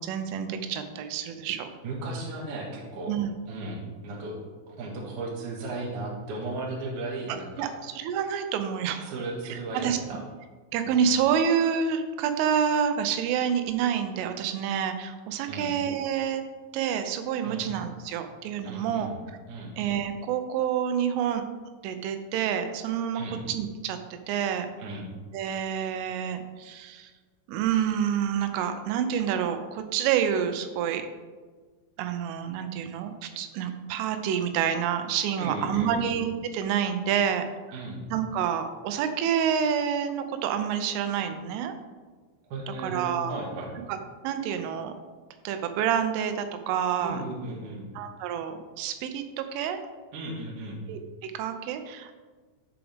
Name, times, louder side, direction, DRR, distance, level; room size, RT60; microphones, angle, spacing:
voice 1, 0.0-1.7 3.1-3.3 7.3-7.7 8.0-9.1 9.5-10.0 10.7-16.4 16.7-19.1 19.8-21.4 21.8-23.2 23.5-24.7 25.3-27.1 27.5-31.0 32.0-37.5 38.1-41.8 42.8-43.3 43.9-44.0 44.2-44.9 45.4-47.2 48.0-49.8 50.9-52.2, right 8 dB, 85° right, 8 dB, 3.2 m, -28 dB
voice 2, 1.8-3.1 3.5-4.4 4.7-7.7 9.0-10.2 10.9-11.1 15.5-15.8 17.4-17.7 18.6-19.2 19.5-19.7 23.1-23.4 24.8-25.1 35.4-36.1 37.7-38.1 42.5-43.7 47.0-47.8 50.1-50.8, right 2 dB, 60° right, -1 dB, 2.2 m, -35 dB
13.5 x 4.9 x 3.4 m, 1.4 s
omnidirectional pair, 5.5 m